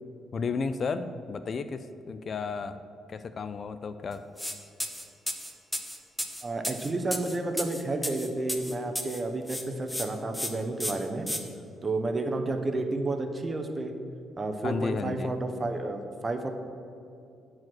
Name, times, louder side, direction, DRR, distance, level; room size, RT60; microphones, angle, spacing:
voice 1, 0.3-2.8 3.1-4.2 14.6-15.3, left 4 dB, 50° left, 12 dB, 0.4 m, -33 dB
sound 1, 4.4-4.5 4.8-9.2 9.5-10.1 10.3-10.5 10.8-11.4, equal, 5° left, 0.8 m, -33 dB
voice 2, 6.4-11.3 11.8-13.9 14.4-16.5, right 2 dB, 30° right, 6 dB, 0.8 m, -31 dB
9.2 x 4.8 x 6.1 m, 2.6 s
cardioid pair, 90°, 0 cm